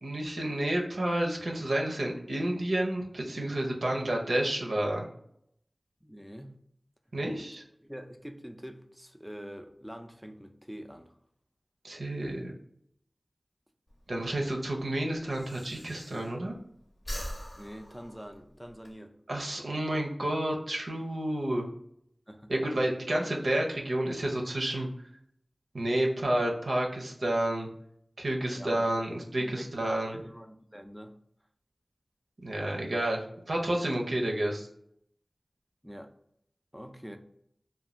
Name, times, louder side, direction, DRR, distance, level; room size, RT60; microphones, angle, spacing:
voice 1, 0.0-5.0 7.1-7.6 11.8-12.5 14.1-16.5 19.3-21.7 22.5-24.9 25.7-27.7 28.2-30.2 32.4-34.7, right 1 dB, 80° right, 0 dB, 0.6 m, -30 dB
voice 2, 6.0-6.6 7.8-11.1 17.6-19.1 22.3-22.5 28.5-28.8 29.4-31.2 35.8-36.1 36.7-37.2, equal, 5° right, 5 dB, 0.4 m, -45 dB
Breathing, 13.9-16.6 16.9-18.9, equal, 35° left, 0.7 m, -42 dB
2.5 x 2.2 x 3.0 m, 0.71 s
wide cardioid pair, 45°, 0 cm